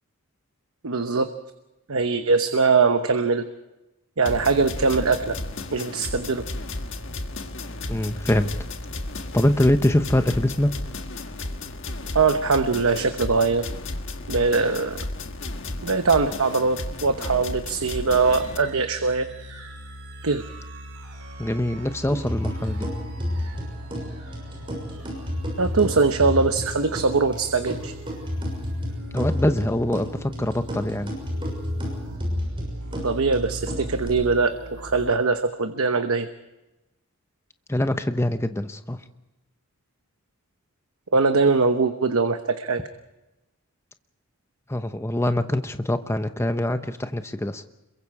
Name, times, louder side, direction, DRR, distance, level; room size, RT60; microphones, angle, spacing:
voice 1, 0.8-1.3 1.9-3.4 4.2-5.4 5.7-6.4 12.1-13.7 14.3-15.0 15.8-19.2 20.2-20.4 25.6-27.9 33.0-36.3 41.1-42.8, right 4 dB, 70° right, 8 dB, 1.0 m, -22 dB
sound 1, 4.3-18.6, left 2 dB, 55° left, 1.6 m, -33 dB
voice 2, 7.9-8.5 9.3-10.7 21.4-22.9 29.1-31.1 37.7-39.0 44.7-47.7, left 1 dB, 10° left, 9 dB, 0.9 m, -24 dB
sound 2, 18.2-35.1, equal, 90° right, 5.0 m, -39 dB
sound 3, 22.1-34.1, left 1 dB, 25° right, 6.5 m, -31 dB
27.0 x 22.5 x 4.8 m, 1.0 s
head